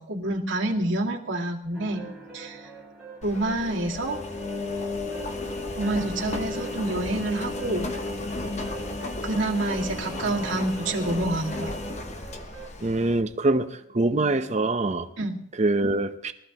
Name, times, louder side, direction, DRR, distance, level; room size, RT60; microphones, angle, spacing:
voice 1, 0.0-2.1 2.3-2.7 3.2-4.2 5.8-7.9 9.2-11.7 15.2-15.4, right 2 dB, 85° right, -1 dB, 2.1 m, -28 dB
sound 1, 1.7-12.7, right 3 dB, 5° right, 3.5 m, -44 dB
Engine, 3.2-13.2, left 2 dB, 35° left, 1.0 m, -33 dB
voice 2, 12.8-15.1 15.6-16.3, right 2 dB, 35° right, 9 dB, 0.8 m, -24 dB
23.0 x 14.0 x 3.0 m, 0.72 s
head